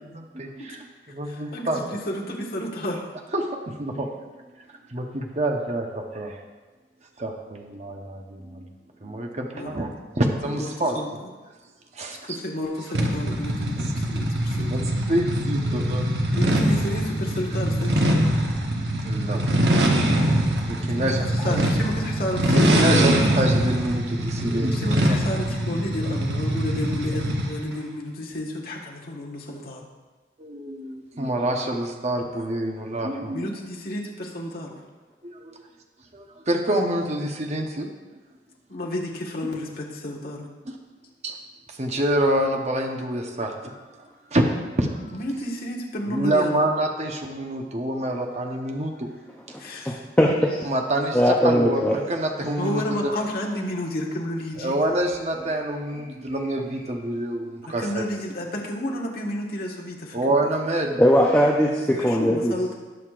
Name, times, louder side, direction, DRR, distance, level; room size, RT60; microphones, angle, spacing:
voice 1, 0.1-1.8 3.3-4.1 4.9-6.4 7.2-8.6 9.0-11.0 11.9-12.4 13.8-13.9 14.2-14.3 14.7-16.3 19.0-19.4 20.6-21.6 22.5-25.0 30.4-33.5 35.2-35.6 36.1-37.9 40.6-40.7 41.2-41.3 41.7-44.4 44.8-45.2 46.1-49.1 49.5-49.6 50.6-53.1 54.6-58.0 60.1-61.0, right 1 dB, 40° right, 2 dB, 1.0 m, -27 dB
voice 2, 1.3-3.1 9.5-9.8 10.5-11.3 12.1-14.9 16.3-18.2 20.9-23.4 24.7-29.9 33.3-34.8 38.7-40.5 45.1-46.7 49.6-50.1 52.6-54.8 57.7-60.5 61.9-62.7, left 1 dB, 55° left, -2 dB, 1.6 m, -31 dB
sound 1, 12.9-27.6, right 1 dB, 75° right, 1.3 m, -23 dB
voice 3, 49.9-50.7 51.1-51.9 61.0-62.5, equal, 10° left, -3 dB, 0.7 m, -19 dB
19.0 x 6.5 x 2.5 m, 1.3 s
head